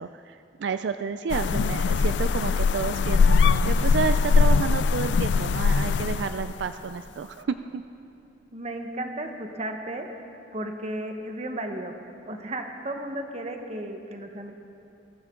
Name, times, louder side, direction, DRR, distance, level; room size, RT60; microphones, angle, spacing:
voice 1, 0.0-7.8, right 5 dB, 75° right, 10 dB, 0.4 m, -30 dB
sound 1, 1.3-6.6, left 5 dB, 75° left, 0.4 m, -21 dB
voice 2, 8.5-10.1 10.5-11.9 12.3-14.5, right 1 dB, 35° right, 5 dB, 1.1 m, -34 dB
22.0 x 14.0 x 3.8 m, 2.8 s
head